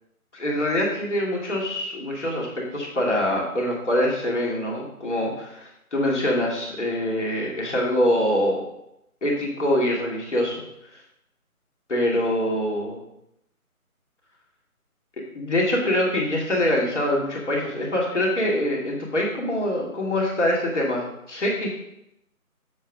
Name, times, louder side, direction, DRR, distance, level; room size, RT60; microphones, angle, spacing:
voice 1, 0.3-8.6 9.2-10.6 11.9-13.0 15.3-21.7, left 1 dB, 50° left, -3 dB, 2.5 m, -24 dB
7.5 x 6.6 x 3.5 m, 0.81 s
figure-of-eight pair, 175°, 44 cm